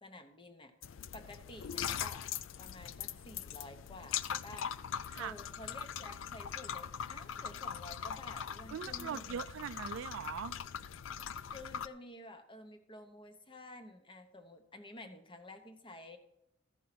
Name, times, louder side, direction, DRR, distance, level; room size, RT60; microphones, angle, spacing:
voice 1, 0.0-0.7 1.1-2.2 2.6-4.7 5.2-9.4 11.5-16.2, left 1 dB, 25° left, 1.0 m, -51 dB
sound 1, 0.8-11.9, left 8 dB, 80° left, 0.4 m, -41 dB
voice 2, 8.7-10.6, right 8 dB, 75° right, 0.3 m, -41 dB
13.5 x 5.5 x 5.9 m
head